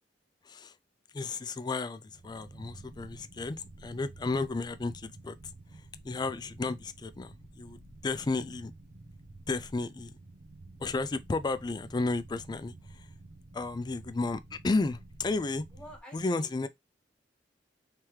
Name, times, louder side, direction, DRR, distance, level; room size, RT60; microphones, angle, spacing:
voice 1, 0.4-0.7 1.1-5.4 5.7-8.7 9.5-10.2 10.8-13.1 13.5-15.6 16.1-16.7, left 3 dB, 25° left, 0.3 m, -33 dB
sound 1, 2.1-16.0, right 2 dB, 75° right, 0.7 m, -51 dB
voice 2, 15.7-16.7, left 1 dB, 5° left, 1.5 m, -49 dB
3.3 x 3.3 x 3.0 m
head